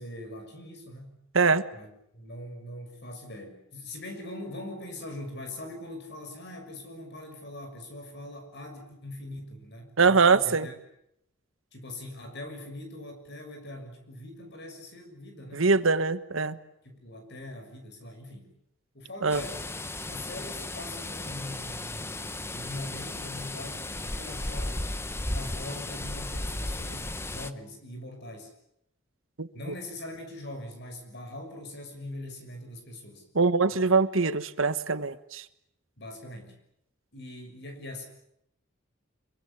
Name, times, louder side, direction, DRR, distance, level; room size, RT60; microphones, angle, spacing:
voice 1, 0.0-1.2 1.7-1.9 2.1-10.7 11.7-15.7 16.8-18.5 18.9-19.6 20.1-28.5 29.5-33.2 33.7-33.9 36.0-36.6 37.1-38.0, left 1 dB, 55° left, 5 dB, 6.5 m, -42 dB
voice 2, 10.0-10.7 15.5-16.6 19.2-19.4 29.4-29.5 33.3-35.4, right 4 dB, 75° right, 13 dB, 1.3 m, -23 dB
sound 1, 19.3-27.5, left 2 dB, 10° left, 0.9 m, -35 dB
25.5 x 23.5 x 8.5 m, 0.76 s
head